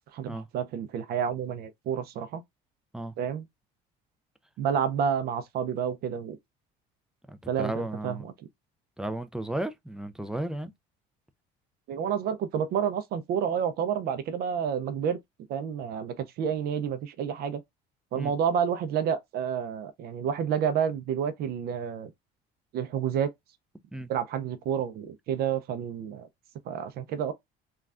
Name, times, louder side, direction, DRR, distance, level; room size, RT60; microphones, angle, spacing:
voice 1, 0.1-2.4 3.2-3.4 4.6-6.4 7.5-8.3 11.9-15.2 15.5-17.6 18.1-22.1 22.7-23.3 24.1-26.3 26.7-27.3, right 8 dB, 55° right, 0.5 m, -29 dB
voice 2, 7.3-8.3 9.0-10.7 18.1-18.3 23.9-24.1, right 1 dB, 5° right, 0.3 m, -34 dB
3.2 x 2.3 x 2.4 m
cardioid pair, 120°, 19 cm